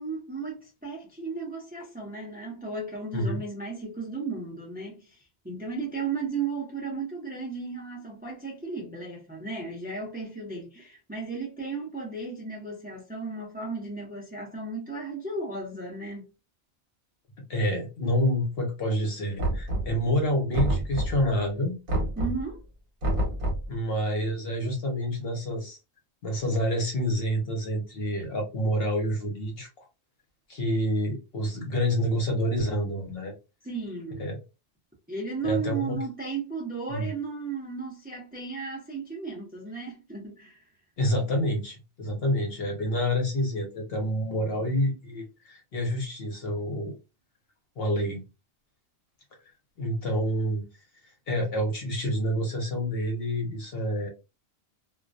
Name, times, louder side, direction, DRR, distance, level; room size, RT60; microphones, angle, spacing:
voice 1, 0.0-16.2 22.2-22.6 33.6-34.3 35.1-40.6, right 4 dB, 10° right, 0.6 m, -35 dB
voice 2, 3.1-3.4 17.5-21.8 23.7-25.8 26.2-29.7 30.5-33.3 34.2-34.4 35.4-36.0 36.9-37.1 41.0-46.9 47.8-48.2 49.8-50.6 51.3-54.1, equal, 60° left, 0.9 m, -28 dB
Knock, 19.4-20.1 20.5-21.3 21.9-22.5 23.0-23.7, right 1 dB, 55° right, 1.0 m, -28 dB
2.3 x 2.2 x 2.5 m
omnidirectional pair, 1.2 m